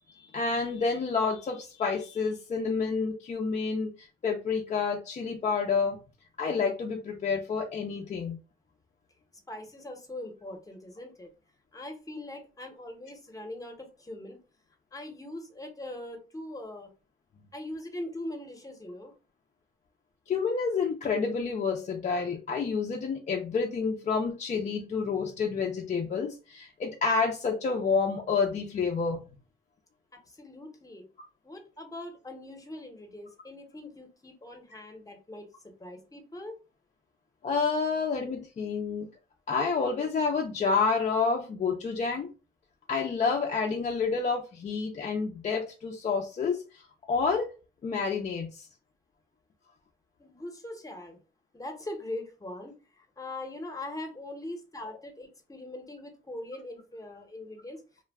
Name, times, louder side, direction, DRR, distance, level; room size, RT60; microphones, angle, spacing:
voice 1, 0.1-6.0 6.4-8.4 20.3-29.2 37.4-39.1 39.5-42.3 42.9-46.8 47.1-47.5 47.8-48.7, left 5 dB, 35° left, 1 dB, 0.5 m, -29 dB
voice 2, 9.5-11.3 11.7-14.4 14.9-16.9 17.5-19.1 30.1-31.1 31.4-36.6 50.2-51.2 51.5-57.8, left 1 dB, 15° left, 4 dB, 0.8 m, -41 dB
2.2 x 2.2 x 3.4 m, 0.32 s
cardioid pair, 90°, 20 cm